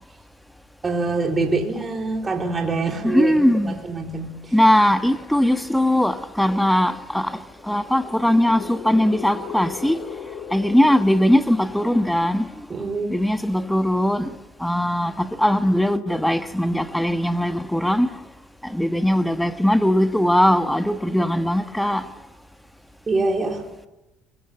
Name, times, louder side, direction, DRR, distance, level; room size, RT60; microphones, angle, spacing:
voice 1, 0.8-4.5 12.7-13.2 23.1-23.7, right 3 dB, 25° right, 3.9 m, -25 dB
voice 2, 3.0-3.8 4.5-10.0 10.5-12.5 13.1-14.3 14.6-18.1 18.6-22.0, left 1 dB, 5° left, 1.4 m, -20 dB
sound 1, 4.0-5.6 6.1-6.2 7.5-12.3, left 7 dB, 55° left, 4.0 m, -39 dB
22.0 x 22.0 x 9.0 m
cardioid pair, 110°, 0 cm